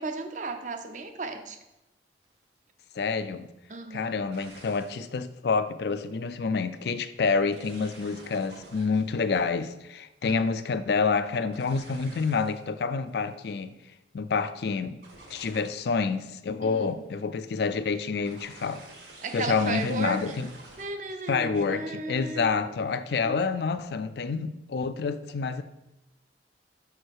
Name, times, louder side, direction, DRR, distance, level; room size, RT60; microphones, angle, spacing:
voice 1, 0.0-1.6 3.7-4.2 10.3-10.5 16.6-17.0 19.2-20.3 20.8-22.7 23.1-23.4, right 3 dB, 45° right, 0.6 m, -35 dB
sound 1, 2.2-2.4 4.2-5.1 5.8-6.1 7.5-10.4 11.5-12.6 13.0-13.6 15.0-16.1 16.5-17.1 18.2-20.8, right 2 dB, 70° right, 1.6 m, -50 dB
voice 2, 2.9-3.5 3.9-13.7 14.1-15.0 15.3-18.8 19.3-20.5 21.3-25.6, left 4 dB, 65° left, 0.4 m, -28 dB
6.3 x 4.7 x 4.6 m
head